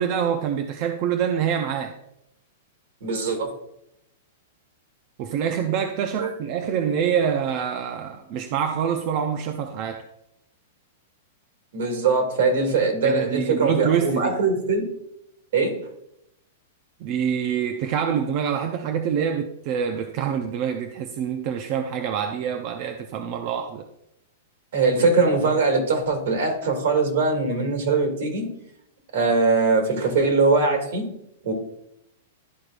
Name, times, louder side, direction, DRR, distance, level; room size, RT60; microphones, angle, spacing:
voice 1, 0.0-1.9 5.2-10.0 13.0-14.4 17.0-23.8, right 8 dB, 35° right, 0.5 m, -26 dB
voice 2, 3.0-3.5 6.2-6.3 11.7-14.9 15.5-15.8 24.7-28.5 29.1-31.1 31.4-31.5, right 3 dB, 65° right, 2.2 m, -21 dB
12.0 x 4.7 x 2.5 m
supercardioid pair, 165°, 0 cm